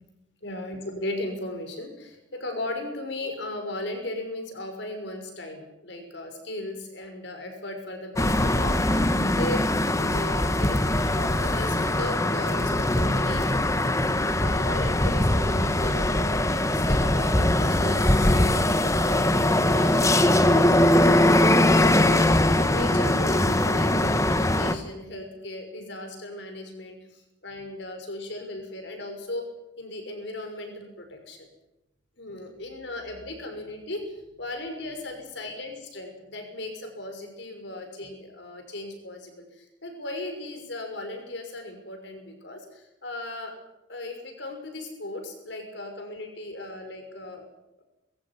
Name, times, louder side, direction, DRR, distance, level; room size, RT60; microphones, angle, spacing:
voice 1, 0.4-9.7 10.0-13.6 14.1-29.5 29.8-31.5 32.2-43.5 43.9-47.4, left 1 dB, 65° left, 4 dB, 6.1 m, -37 dB
sound 1, 8.2-24.7, left 1 dB, 15° left, 1.2 m, -21 dB
21.5 x 16.0 x 9.9 m, 0.90 s
head